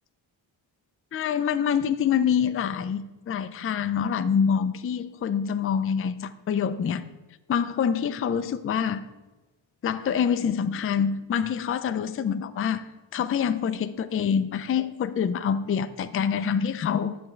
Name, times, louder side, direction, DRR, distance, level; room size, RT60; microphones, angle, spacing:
voice 1, 1.1-7.1 7.5-9.1 9.8-12.8 13.1-17.2, left 7 dB, 30° left, 12 dB, 0.4 m, -26 dB
7.7 x 3.6 x 6.5 m, 1.1 s
cardioid pair, 65°, 47 cm